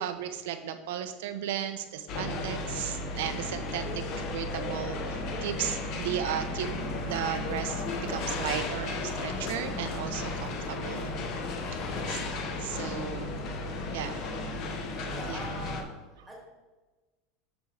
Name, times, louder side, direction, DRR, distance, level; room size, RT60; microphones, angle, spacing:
voice 1, 0.0-4.0 4.3-11.1 12.1-13.3 13.9-14.4 15.3-15.4, right 10 dB, 80° right, 8 dB, 0.5 m, -35 dB
sound 1, 2.1-15.8, left 2 dB, 40° left, 0.8 m, -34 dB
sound 2, 4.2-14.7, right 3 dB, 15° right, 1.0 m, -49 dB
sound 3, 6.6-12.2, left 6 dB, 90° left, 0.8 m, -48 dB
voice 2, 15.1-15.9 16.3-16.4, equal, ahead, -4 dB, 1.9 m, -44 dB
8.1 x 6.2 x 3.2 m, 1.2 s
supercardioid pair, 175°, 0 cm